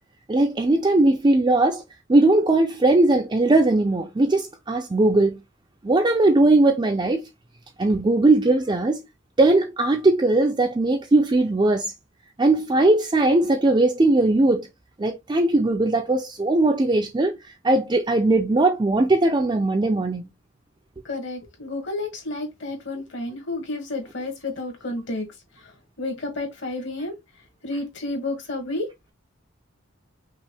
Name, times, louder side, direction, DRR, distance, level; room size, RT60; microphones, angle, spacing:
voice 1, 0.3-1.8 2.1-5.4 5.8-7.3 7.8-9.1 9.4-11.9 12.4-14.7 15.0-20.3, right 2 dB, 20° right, 0.4 m, -19 dB
voice 2, 21.1-25.3 26.0-27.1 27.6-28.9, left 2 dB, 60° left, 1.8 m, -30 dB
5.4 x 2.5 x 3.3 m
head